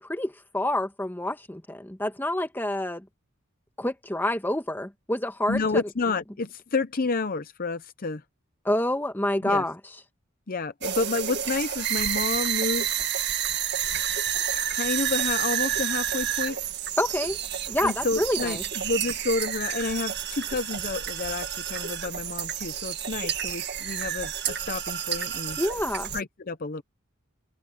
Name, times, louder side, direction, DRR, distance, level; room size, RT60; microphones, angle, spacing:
voice 1, 0.0-3.1 3.8-5.8 8.6-9.8 17.0-17.4 17.7-18.6 25.6-26.1, left 1 dB, 10° left, 1.5 m, -27 dB
voice 2, 5.5-8.2 9.4-9.6 10.5-12.9 14.5-16.6 17.8-25.6 26.1-26.8, left 3 dB, 45° left, 0.7 m, -30 dB
sound 1, 10.8-26.2, right 10 dB, 50° right, 1.9 m, -30 dB
open air
head